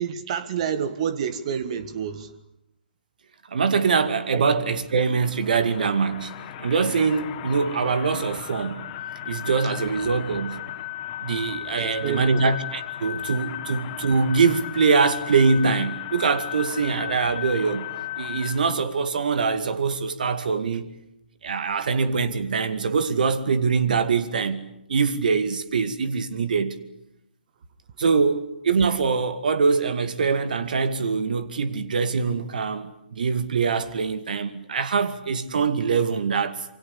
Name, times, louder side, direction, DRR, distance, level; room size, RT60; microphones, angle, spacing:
voice 1, 0.0-2.3 4.3-4.4 9.8-9.9 11.8-12.4, right 7 dB, 40° right, 1.7 m, -28 dB
voice 2, 3.5-6.3 6.6-8.9 9.3-10.6 11.2-17.9 18.2-20.9 21.4-26.8 28.0-36.6, right 5 dB, 55° right, 2.3 m, -23 dB
sound 1, 4.9-18.6, left 13 dB, 30° left, 2.8 m, -35 dB
27.5 x 24.5 x 8.5 m
figure-of-eight pair, 130°, 5 cm